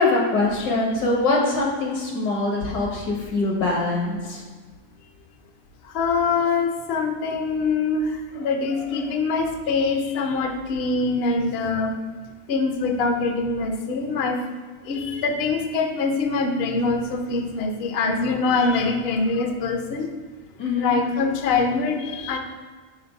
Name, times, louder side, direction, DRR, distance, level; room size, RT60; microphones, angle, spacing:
voice 1, 0.0-4.4 20.6-21.0, left 2 dB, 80° left, -1 dB, 1.8 m, -23 dB
voice 2, 5.8-11.9 12.5-14.4 14.8-20.1 20.8-22.4, left 4 dB, 60° left, 4 dB, 0.6 m, -24 dB
5.1 x 3.9 x 5.3 m, 1.4 s
omnidirectional pair, 1.7 m